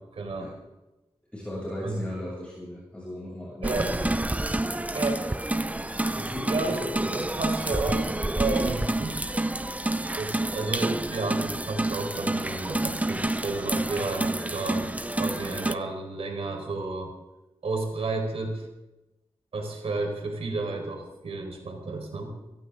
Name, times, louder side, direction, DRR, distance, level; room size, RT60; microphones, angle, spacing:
voice 1, 0.1-0.5 1.8-2.0 3.6-3.9 4.9-5.3 6.5-6.8 7.1-8.1 8.3-9.2 10.2-14.9 15.1-17.1 17.6-18.6 19.5-22.3, right 3 dB, 80° right, 2 dB, 4.7 m, -31 dB
voice 2, 1.3-4.1 6.1-7.1, left 1 dB, 10° left, -6 dB, 7.6 m, -36 dB
sound 1, 3.6-15.8, right 1 dB, 15° right, 0.7 m, -29 dB
23.5 x 16.0 x 3.9 m, 1.0 s
wide cardioid pair, 70°, 10 cm